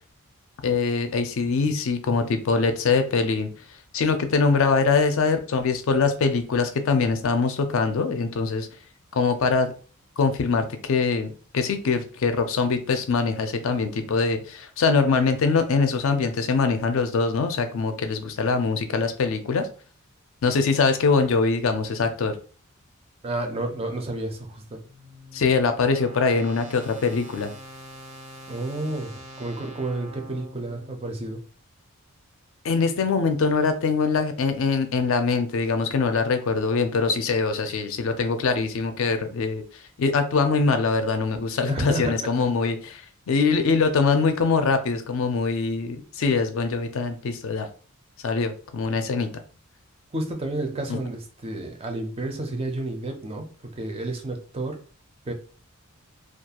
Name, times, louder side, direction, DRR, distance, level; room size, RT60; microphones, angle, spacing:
voice 1, 0.6-3.5 3.9-8.7 9.1-9.7 10.2-19.7 20.4-22.3 25.3-27.5 32.6-39.6 40.0-47.7 48.2-49.3 50.9-51.0, left 4 dB, 65° left, 0.4 m, -23 dB
voice 2, 23.2-24.8 28.5-31.4 41.7-42.5 50.1-53.5 53.8-54.8 55.3-55.4, right 2 dB, 25° right, 0.4 m, -31 dB
sound 1, 24.3-31.5, equal, 80° right, 0.9 m, -45 dB
2.3 x 2.2 x 2.8 m
head